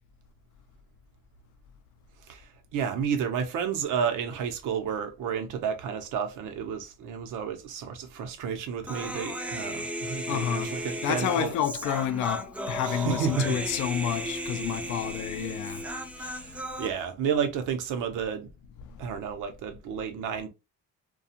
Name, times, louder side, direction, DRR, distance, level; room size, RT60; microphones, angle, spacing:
voice 1, 2.7-11.5 12.8-13.6 16.2-18.5 19.0-20.5, right 7 dB, 85° right, 0.7 m, -31 dB
Human voice, 8.9-16.9, equal, 5° right, 0.3 m, -35 dB
voice 2, 10.3-10.8 11.0-15.9 16.2-16.7 18.8-19.0, left 10 dB, 80° left, 0.5 m, -30 dB
2.4 x 2.3 x 2.7 m
cardioid pair, 90°, 30 cm